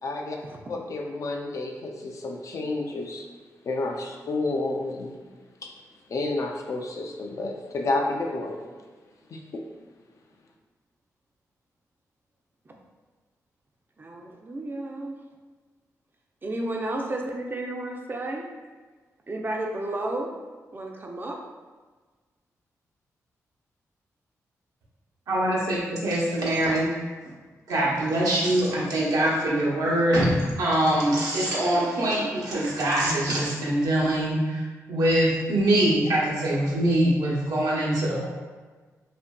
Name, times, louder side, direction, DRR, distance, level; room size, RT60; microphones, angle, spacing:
voice 1, 0.0-0.4 0.7-3.2 3.6-5.1 5.6-5.7 6.1-8.6 9.3-9.6, left 2 dB, 55° left, 1 dB, 0.4 m, -30 dB
voice 2, 14.0-15.2 16.4-18.5 19.3-20.3 20.7-21.4, right 1 dB, 35° right, 1 dB, 0.4 m, -32 dB
voice 3, 25.3-26.9 27.7-34.6 34.9-38.3, right 1 dB, 80° right, -5 dB, 0.7 m, -23 dB
2.7 x 2.5 x 2.2 m, 1.4 s
cardioid pair, 60°, 6 cm